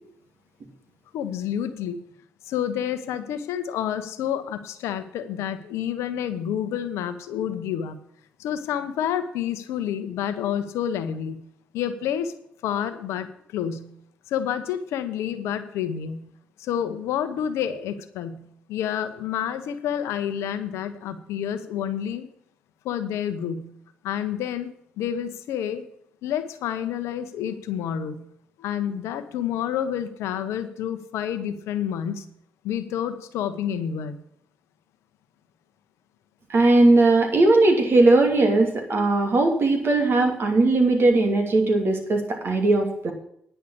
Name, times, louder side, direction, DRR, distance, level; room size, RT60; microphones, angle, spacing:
voice 1, 1.1-2.0 2.5-7.9 8.4-11.4 11.7-12.3 12.6-13.9 14.3-16.3 16.6-18.4 18.7-22.3 22.8-23.7 24.0-24.7 25.0-25.8 26.2-28.2 28.6-32.3 32.6-34.2, left 9 dB, 80° left, 10 dB, 0.9 m, -29 dB
voice 2, 36.5-43.1, right 2 dB, 55° right, 3 dB, 2.8 m, -19 dB
10.0 x 5.7 x 8.6 m, 0.69 s
supercardioid pair, 45°, 5 cm